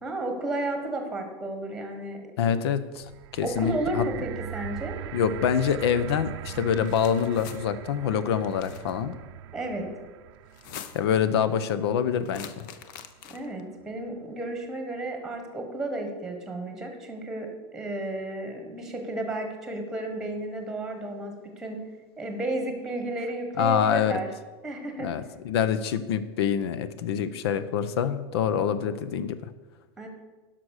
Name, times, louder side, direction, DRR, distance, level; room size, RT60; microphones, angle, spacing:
voice 1, 0.0-2.2 3.4-5.0 9.5-9.9 13.3-21.8 22.2-24.3 24.6-25.1 30.0-30.1, right 1 dB, 5° right, 4 dB, 1.4 m, -32 dB
voice 2, 2.4-3.1 3.3-4.0 5.1-9.1 10.9-12.7 23.6-24.2 25.0-29.4, left 8 dB, 85° left, 13 dB, 0.8 m, -26 dB
sound 1, 3.0-13.2 13.9-14.0, right 11 dB, 75° right, 0.5 m, -41 dB
sound 2, 6.6-7.6 8.4-8.9 10.5-11.2 12.2-13.6, left 9 dB, 55° left, 0.8 m, -44 dB
11.0 x 6.0 x 6.5 m, 1.3 s
supercardioid pair, 170°, 13 cm